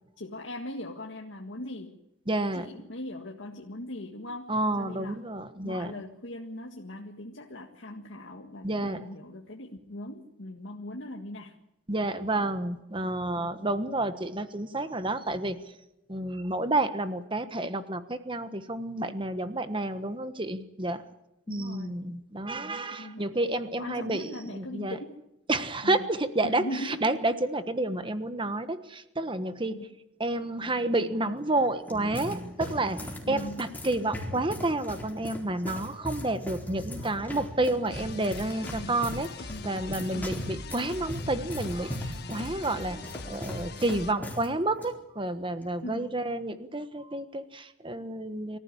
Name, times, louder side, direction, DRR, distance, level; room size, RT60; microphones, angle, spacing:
voice 1, 0.2-2.0 2.5-5.2 5.6-11.5 12.3-12.5 13.4-13.7 21.5-22.0 22.6-23.4 23.8-25.2 25.8-26.1 26.4-27.0 29.7-29.9 33.3-33.7 38.7-39.0 39.5-39.8 40.1-40.4 45.8-46.2, left 1 dB, 85° left, 1 dB, 1.8 m, -40 dB
voice 2, 2.3-2.7 4.5-5.9 8.6-9.1 11.9-15.7 16.1-21.0 21.5-25.0 25.5-29.9 30.2-48.6, right 2 dB, 25° right, 10 dB, 1.3 m, -30 dB
sound 1, 31.6-44.5 44.7-44.9 45.6-45.9, equal, 10° left, 4.2 m, -39 dB
sound 2, 37.9-44.1, left 3 dB, 60° left, 1.5 m, -42 dB
24.0 x 15.0 x 9.9 m, 0.89 s
head